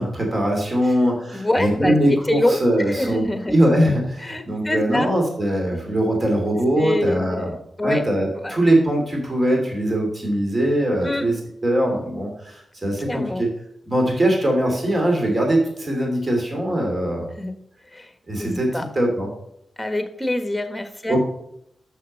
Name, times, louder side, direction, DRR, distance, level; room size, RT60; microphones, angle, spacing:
voice 1, 0.0-7.5 7.8-11.3 11.6-13.5 13.9-17.3 18.3-19.3 21.1-21.2, right 1 dB, 35° right, 0 dB, 2.7 m, -21 dB
voice 2, 1.3-3.6 4.2-5.1 5.7-5.8 6.8-8.0 8.3-8.6 11.0-11.3 13.0-13.4 17.3-17.5 17.9-18.9 19.8-21.2, left 1 dB, 15° left, 8 dB, 1.4 m, -25 dB
6.4 x 6.4 x 5.3 m, 0.74 s
cardioid pair, 50°, 0 cm